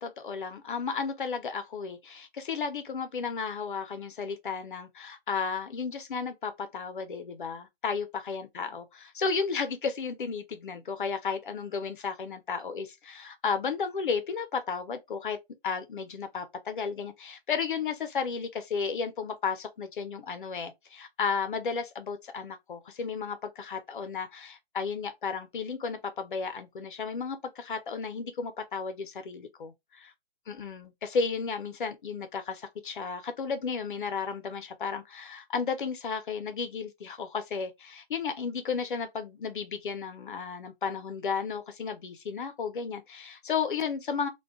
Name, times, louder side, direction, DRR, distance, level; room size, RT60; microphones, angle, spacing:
voice 1, 0.0-15.4 15.6-30.1 30.5-44.3, left 5 dB, 55° left, 0.6 m, -33 dB
2.2 x 2.2 x 3.4 m
hypercardioid pair, 175°, 31 cm